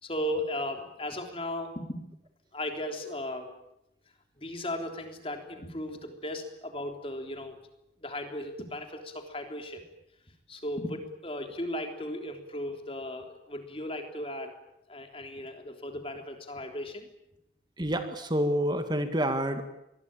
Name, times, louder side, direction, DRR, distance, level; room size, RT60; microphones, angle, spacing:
voice 1, 0.0-2.0 2.5-3.5 4.4-7.6 8.0-9.8 10.5-14.5 14.9-17.1, left 1 dB, 30° left, 5 dB, 3.4 m, -36 dB
voice 2, 17.8-19.6, equal, 25° right, 8 dB, 1.9 m, -28 dB
25.0 x 21.0 x 8.9 m, 0.83 s
head